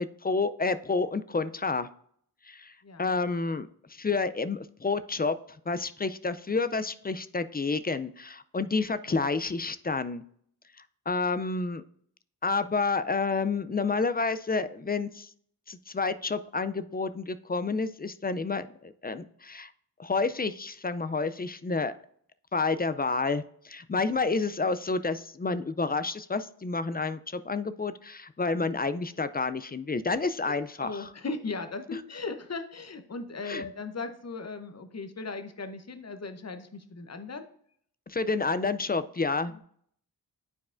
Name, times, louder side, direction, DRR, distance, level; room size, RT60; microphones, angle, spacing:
voice 1, 0.0-1.9 2.4-5.4 5.7-10.2 11.1-11.8 12.4-15.3 15.7-19.7 20.0-21.9 22.5-31.1 33.4-33.6 38.1-39.6, left 4 dB, 25° left, 13 dB, 0.3 m, -29 dB
voice 2, 30.4-37.5 39.5-39.6, left 3 dB, 40° left, 9 dB, 0.7 m, -38 dB
9.5 x 4.7 x 2.5 m, 0.63 s
wide cardioid pair, 50°, 40 cm